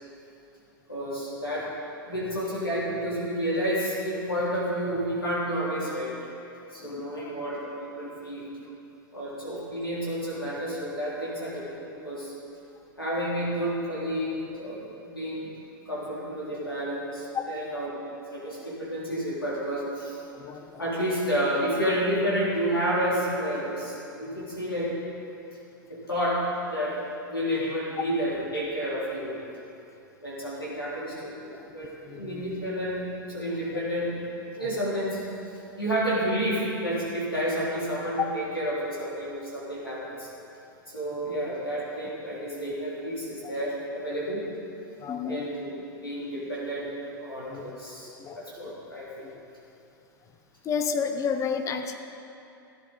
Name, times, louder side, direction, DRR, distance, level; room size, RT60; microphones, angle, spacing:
voice 1, 0.9-1.7 2.1-6.2 6.7-8.5 9.1-12.3 13.0-15.5 15.9-17.9 18.3-20.2 20.8-24.9 25.9-27.0 27.3-29.4 30.2-34.2 34.5-35.2 35.8-40.3 40.9-44.4 45.3-45.7 46.0-46.9 47.2-49.3, equal, 90° left, -7 dB, 3.5 m, -30 dB
voice 2, 6.8-7.3 17.3-17.4 20.3-21.0 31.5-31.7 32.1-32.5 38.2-38.3 43.4-43.5 45.0-45.5 46.3-46.5 47.5-47.7 48.2-48.8 49.2-49.3 50.6-51.9, left 6 dB, 25° left, 6 dB, 1.0 m, -32 dB
16.0 x 10.5 x 4.1 m, 2.8 s
figure-of-eight pair, 90°, 12 cm